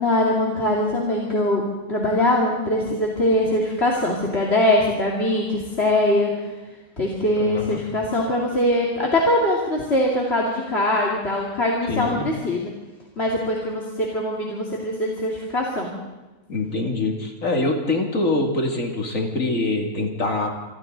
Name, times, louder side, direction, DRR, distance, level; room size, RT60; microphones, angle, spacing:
voice 1, 0.0-6.5 7.0-12.7 13.2-16.0, left 1 dB, 50° left, -3 dB, 2.7 m, -22 dB
voice 2, 7.4-7.8 11.9-12.3 16.5-20.5, left 2 dB, 80° left, 2 dB, 3.1 m, -24 dB
27.0 x 24.5 x 4.0 m, 1.1 s
omnidirectional pair, 1.4 m